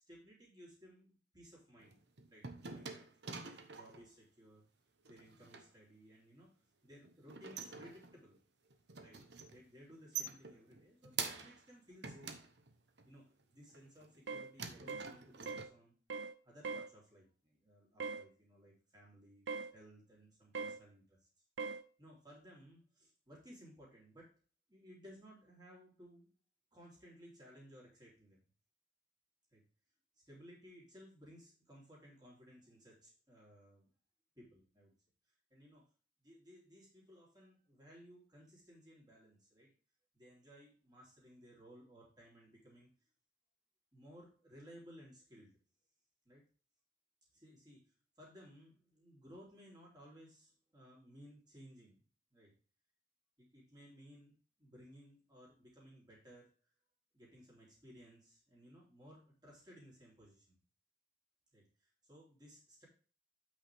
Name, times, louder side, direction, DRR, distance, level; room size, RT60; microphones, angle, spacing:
voice 1, 0.1-2.0 2.3-3.1 3.4-4.6 5.1-6.5 6.8-8.4 9.0-9.2 9.5-12.4 13.1-16.0 16.4-21.2 22.0-24.3 24.7-26.3 26.7-28.4 29.5-29.6 30.3-33.9 34.4-34.9 35.5-35.9 36.2-39.7 40.1-42.9 43.9-45.5 46.3-46.4 47.3-47.8 48.2-52.0 52.3-52.5 53.4-56.5 57.1-60.6 61.5-62.9, equal, 20° right, -3 dB, 3.6 m, -59 dB
sound 1, 1.8-4.1 5.0-5.7 7.0-8.4 8.7-9.6 9.9-11.7 12.0-13.1 13.7-14.3 14.6-15.6, right 6 dB, 65° right, 1.0 m, -46 dB
sound 2, 14.3-14.5 14.9-15.1 15.5-15.7 16.1-16.3 16.6-16.9 18.0-18.2 19.5-19.7 20.5-20.8 21.6-21.8, right 4 dB, 85° right, 0.7 m, -41 dB
8.3 x 6.3 x 3.5 m, 0.38 s
head